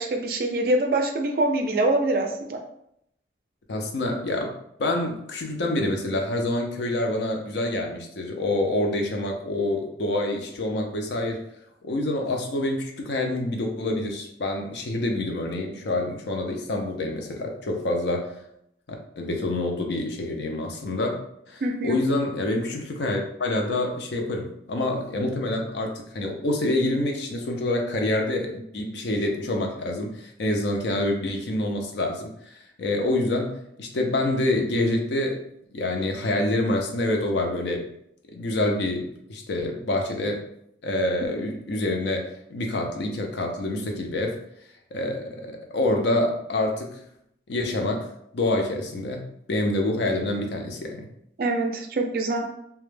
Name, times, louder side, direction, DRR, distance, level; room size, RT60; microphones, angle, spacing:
voice 1, 0.0-2.6 21.6-22.0 51.4-52.5, right 2 dB, 55° right, 4 dB, 0.3 m, -24 dB
voice 2, 3.7-4.5 4.8-11.4 11.8-18.4 18.9-21.2 21.5-35.4 35.7-37.9 38.3-40.4 40.8-44.4 44.9-47.0 47.5-48.1 48.3-49.2 49.5-51.1, left 1 dB, 75° left, 2 dB, 0.5 m, -27 dB
2.2 x 2.1 x 3.1 m, 0.75 s
head